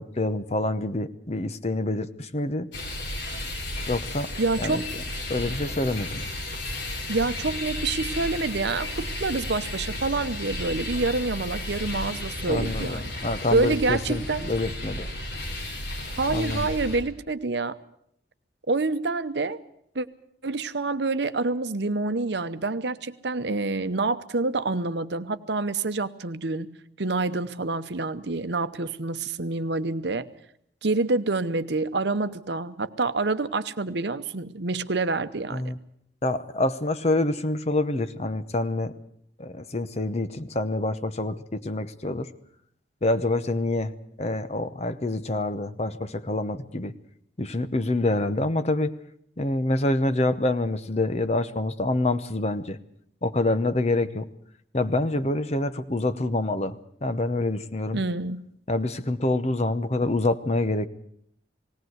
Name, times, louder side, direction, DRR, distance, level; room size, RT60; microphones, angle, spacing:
voice 1, 0.0-2.7 3.9-4.3 4.6-4.8 5.3-6.3 12.5-15.1 16.3-16.7 35.5-35.8 36.2-38.9 39.4-42.3 43.0-43.9 44.2-46.9 47.4-48.9 49.4-52.8 53.2-54.3 54.7-58.0 58.7-60.9, left 2 dB, 35° left, 11 dB, 0.9 m, -26 dB
sound 1, 2.7-17.0, left 1 dB, 75° left, 4.1 m, -33 dB
voice 2, 4.4-4.9 7.1-13.0 13.5-14.5 16.2-17.8 18.7-19.6 19.9-20.1 20.4-26.7 27.0-30.3 30.8-35.6 57.9-58.4, right 3 dB, 65° right, 11 dB, 0.9 m, -27 dB
19.0 x 18.0 x 7.9 m, 0.70 s
head